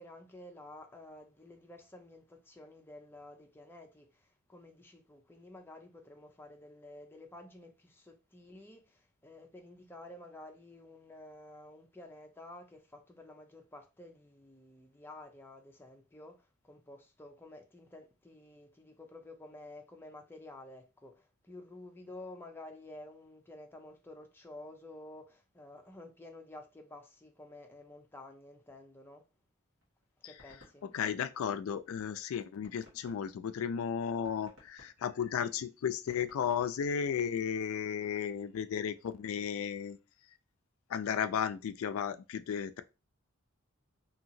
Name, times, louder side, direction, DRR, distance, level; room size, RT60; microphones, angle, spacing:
voice 1, 0.0-29.2 30.2-30.8, left 1 dB, 10° left, 0.5 m, -51 dB
sound 1, 29.8-31.9 32.3-32.4 32.6-37.5, left 1 dB, 65° right, 1.3 m, -61 dB
voice 2, 30.2-40.0 40.3-40.4 40.9-42.8, left 7 dB, 70° left, 0.3 m, -34 dB
2.8 x 2.8 x 2.6 m
head